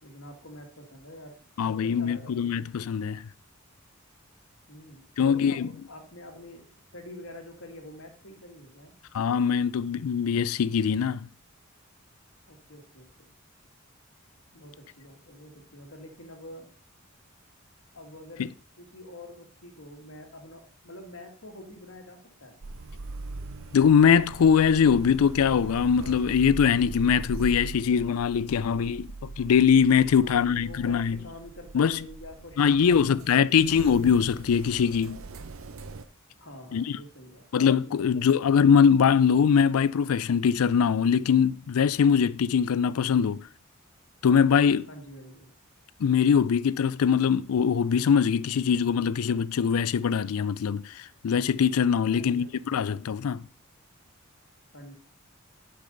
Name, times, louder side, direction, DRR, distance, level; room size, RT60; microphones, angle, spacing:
voice 1, 0.0-2.7 4.7-8.9 12.5-13.3 14.5-16.7 17.9-22.6 30.1-33.9 36.4-38.4 44.9-45.5 52.0-52.8 54.7-54.9, left 1 dB, 65° left, 1.9 m, -46 dB
voice 2, 1.6-3.3 5.2-5.7 9.1-11.3 23.7-31.2 31.7-32.0 32.6-35.2 36.7-37.0 37.5-43.5 44.2-44.9 46.0-53.4, left 7 dB, 85° left, 0.4 m, -22 dB
sound 1, 22.6-36.0, right 3 dB, 70° right, 0.7 m, -41 dB
7.6 x 5.5 x 5.3 m
head